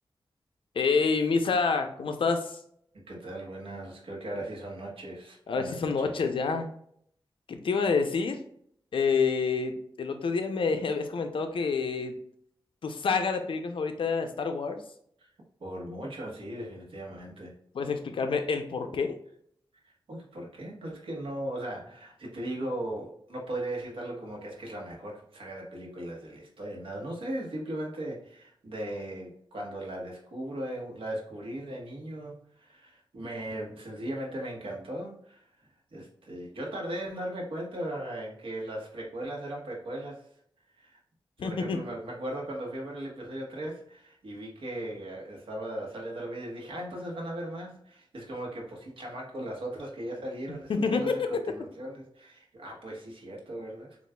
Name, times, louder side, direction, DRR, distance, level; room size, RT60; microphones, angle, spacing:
voice 1, 0.8-2.5 5.5-6.7 7.5-8.4 8.9-12.1 12.8-14.8 17.7-19.2 41.4-41.8 50.7-51.4, left 4 dB, 70° left, 6 dB, 0.5 m, -28 dB
voice 2, 2.9-6.2 15.2-15.3 15.6-17.5 20.1-40.3 40.8-41.0 41.4-54.0, right 1 dB, 80° right, -1 dB, 1.2 m, -38 dB
7.0 x 2.5 x 2.2 m, 0.67 s
wide cardioid pair, 175°, 9 cm